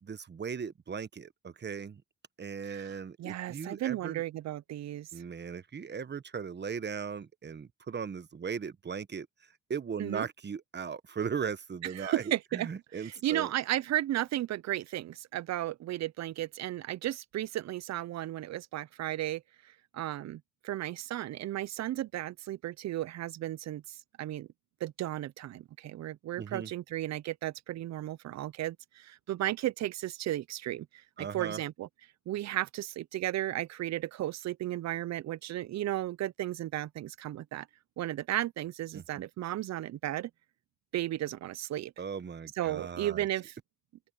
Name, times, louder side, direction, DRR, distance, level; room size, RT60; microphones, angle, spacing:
voice 1, 0.0-2.0 2.4-4.2 5.1-9.3 9.7-13.5 26.4-26.7 31.2-31.6 38.9-39.2 42.0-43.2, right 6 dB, 35° right, 1.1 m, -38 dB
voice 2, 3.2-5.1 10.0-10.3 12.0-12.7 13.0-19.4 19.9-24.5 24.8-30.9 31.2-31.9 32.3-37.7 38.0-40.3 40.9-41.9 42.6-43.5, right 14 dB, 60° right, 0.6 m, -34 dB
open air
cardioid pair, 90°, 30 cm